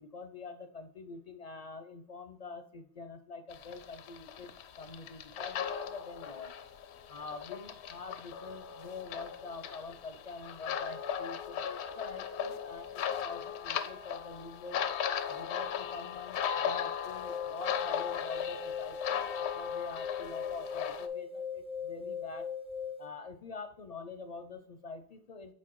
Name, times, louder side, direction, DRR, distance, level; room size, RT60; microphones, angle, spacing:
voice 1, 0.0-4.5 4.8-6.5 7.1-14.8 15.3-22.5 23.0-25.5, left 4 dB, 50° left, 9 dB, 0.5 m, -45 dB
sound 1, 3.5-21.1, left 8 dB, 90° left, 0.9 m, -38 dB
sound 2, 17.1-23.1, left 6 dB, 10° right, 0.4 m, -39 dB
6.2 x 4.4 x 4.5 m, 0.62 s
omnidirectional pair, 1.1 m